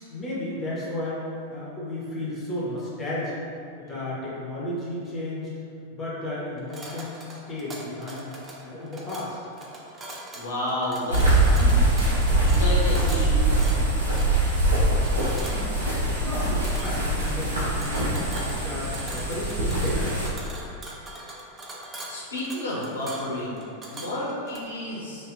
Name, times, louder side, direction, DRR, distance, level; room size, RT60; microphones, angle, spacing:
voice 1, 0.1-3.3 3.8-5.5 5.9-8.3 8.6-9.4 15.4-15.9 16.2-18.2 18.5-20.6, left 1 dB, 15° left, -8 dB, 0.7 m, -33 dB
sound 1, 6.6-24.6, right 1 dB, 20° right, 0.4 m, -41 dB
voice 2, 10.3-11.8 12.4-13.7 21.7-25.3, left 1 dB, 70° left, -6 dB, 0.5 m, -32 dB
sound 2, 11.1-20.3, right 1 dB, 70° right, 0.6 m, -23 dB
2.6 x 2.0 x 2.6 m, 2.6 s
figure-of-eight pair, 90°, 0 cm